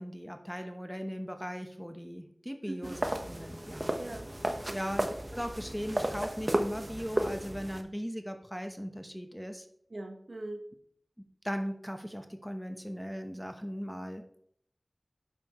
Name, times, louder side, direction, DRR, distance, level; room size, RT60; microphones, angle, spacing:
voice 1, 0.0-4.0 4.7-9.6 11.4-14.2, equal, ahead, 6 dB, 0.9 m, -38 dB
voice 2, 2.6-3.0 4.0-4.8 9.9-10.6, right 2 dB, 65° right, 5 dB, 1.1 m, -41 dB
sound 1, 2.8-7.8, right 1 dB, 30° right, 1.0 m, -34 dB
9.1 x 7.0 x 3.0 m, 0.66 s
wide cardioid pair, 50°, 0 cm